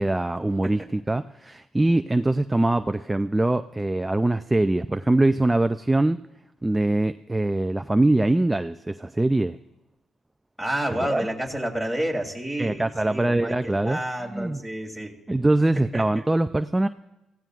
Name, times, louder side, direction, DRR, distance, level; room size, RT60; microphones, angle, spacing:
voice 1, 0.0-6.2 6.6-9.6 11.1-11.3 12.6-14.0 14.3-14.6 15.3-16.9, right 2 dB, 10° right, 10 dB, 0.4 m, -23 dB
voice 2, 10.6-15.2 15.7-16.2, right 1 dB, 5° left, 2 dB, 3.0 m, -30 dB
24.5 x 16.0 x 2.5 m, 0.98 s
cardioid pair, 90°, 0 cm